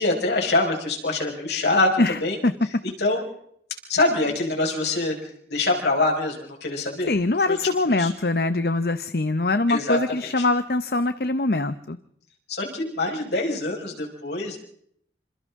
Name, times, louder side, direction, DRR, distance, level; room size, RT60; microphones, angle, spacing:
voice 1, 0.0-1.9 2.2-2.4 2.8-3.2 3.9-5.2 5.5-7.1 7.5-7.6 7.8-8.1 9.7-10.0 10.4-10.5 12.5-14.6, left 2 dB, 75° left, 1 dB, 5.3 m, -24 dB
voice 2, 2.0-2.5 7.1-12.0, left 2 dB, 60° left, 11 dB, 0.8 m, -23 dB
28.0 x 26.5 x 3.7 m, 0.68 s
head